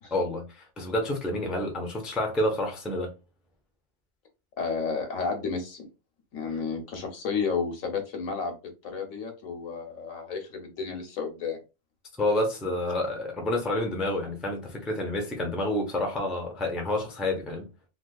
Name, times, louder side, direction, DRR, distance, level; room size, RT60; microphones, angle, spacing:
voice 1, 0.1-3.1 12.2-17.7, left 1 dB, ahead, 0.4 m, -29 dB
voice 2, 4.6-5.8 6.3-11.6, left 5 dB, 85° left, 1.3 m, -32 dB
3.3 x 2.8 x 2.3 m
omnidirectional pair, 1.4 m